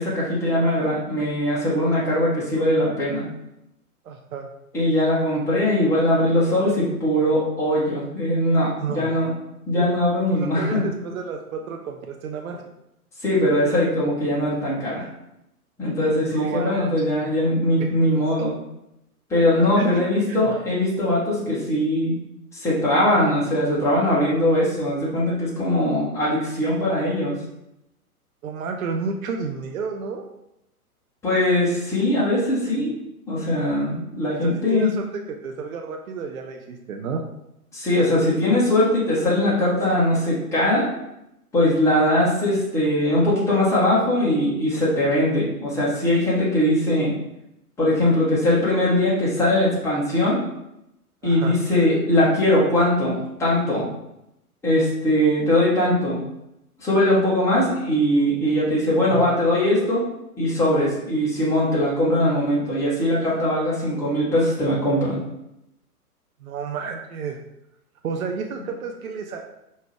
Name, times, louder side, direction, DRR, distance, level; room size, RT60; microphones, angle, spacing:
voice 1, 0.0-3.2 4.7-9.3 9.7-10.8 13.2-15.1 15.8-18.5 19.3-22.1 22.5-27.3 31.2-32.9 33.3-34.9 37.7-40.9 41.5-47.1 47.8-50.4 51.2-53.8 54.6-56.2 56.8-60.0 60.4-65.2, left 1 dB, 5° left, -7 dB, 1.0 m, -21 dB
voice 2, 4.0-4.5 8.8-9.3 10.3-12.7 16.3-17.3 17.8-17.9 19.8-20.5 28.4-30.3 34.4-37.2 51.2-51.6 59.1-59.4 66.4-67.4 68.0-69.4, right 5 dB, 65° right, 3 dB, 0.6 m, -31 dB
4.5 x 2.9 x 3.2 m, 0.85 s
figure-of-eight pair, 115°, 46 cm